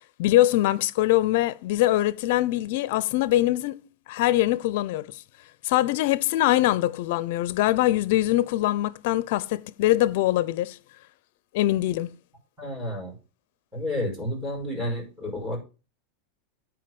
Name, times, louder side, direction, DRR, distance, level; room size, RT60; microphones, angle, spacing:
voice 1, 0.2-3.8 4.1-5.1 5.6-10.8 11.5-12.1, left 15 dB, 55° left, 0.6 m, -23 dB
voice 2, 12.6-13.2 13.7-15.6, left 1 dB, 5° right, 6.0 m, -30 dB
9.3 x 5.0 x 7.9 m
supercardioid pair, 170°, 0 cm